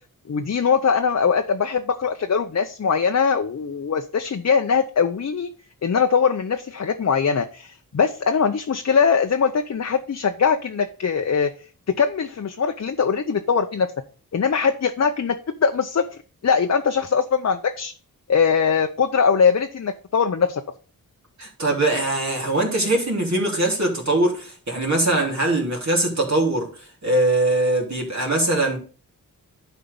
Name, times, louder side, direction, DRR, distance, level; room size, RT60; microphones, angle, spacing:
voice 1, 0.3-5.5 5.8-11.5 12.0-13.9 14.3-16.0 16.4-17.9 18.3-20.6, left 6 dB, 50° left, 0.7 m, -21 dB
voice 2, 21.4-26.7 27.0-28.8, right 2 dB, 50° right, 3.3 m, -21 dB
11.0 x 4.6 x 5.3 m
wide cardioid pair, 80°, 35 cm